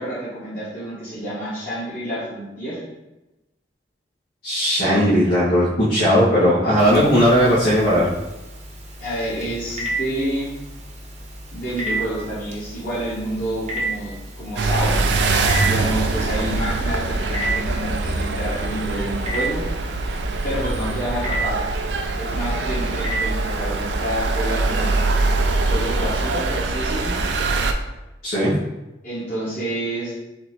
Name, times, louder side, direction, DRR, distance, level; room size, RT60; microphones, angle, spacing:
voice 1, 0.0-2.8 4.8-5.0 9.0-10.5 11.5-15.0 15.6-19.6 20.4-21.6 22.2-25.1 25.7-27.2 29.0-30.1, right 1 dB, 50° left, -12 dB, 1.6 m, -28 dB
voice 2, 4.4-8.1 28.2-28.5, equal, 80° left, -11 dB, 1.6 m, -17 dB
Telephone, 6.8-26.6, right 1 dB, 40° right, 0.8 m, -33 dB
sound 1, 14.6-27.7, right 3 dB, 75° right, 0.4 m, -23 dB
4.3 x 2.9 x 4.3 m, 0.99 s
head